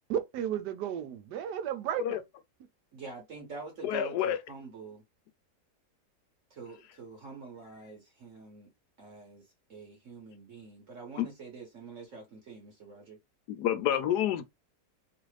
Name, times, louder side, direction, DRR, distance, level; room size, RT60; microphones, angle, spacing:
voice 1, 0.1-2.2, right 9 dB, 85° right, 1.2 m, -33 dB
voice 2, 2.9-5.0 6.5-8.7 9.0-13.2 13.8-14.0, right 4 dB, 55° right, 1.1 m, -46 dB
voice 3, 3.8-4.4 11.2-11.3 13.5-14.4, left 10 dB, 80° left, 1.2 m, -28 dB
3.1 x 2.5 x 3.1 m
omnidirectional pair, 1.8 m